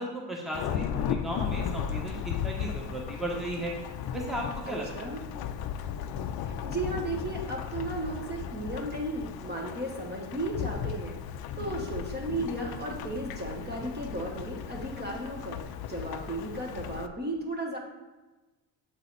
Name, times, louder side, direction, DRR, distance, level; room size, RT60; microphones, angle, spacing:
voice 1, 0.0-3.7 4.1-4.9, right 1 dB, ahead, -2 dB, 1.1 m, -35 dB
Thunderstorm / Rain, 0.5-17.1, left 8 dB, 55° left, 0.5 m, -36 dB
voice 2, 4.7-5.2 6.4-11.2 11.6-17.8, right 2 dB, 20° right, 0 dB, 1.1 m, -35 dB
7.5 x 4.0 x 4.0 m, 1.2 s
cardioid pair, 105°, 46 cm